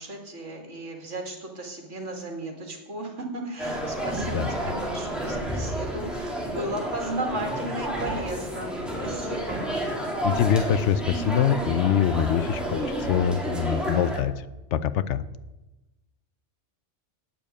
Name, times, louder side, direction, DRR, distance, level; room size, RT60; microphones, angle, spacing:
voice 1, 0.0-9.7, right 2 dB, 80° right, 2 dB, 2.3 m, -35 dB
sound 1, 3.6-14.2, right 1 dB, ahead, 2.2 m, -30 dB
voice 2, 10.2-14.4 14.7-15.2, left 9 dB, 80° left, 15 dB, 0.9 m, -24 dB
8.9 x 6.9 x 8.7 m, 1.0 s
omnidirectional pair, 1.2 m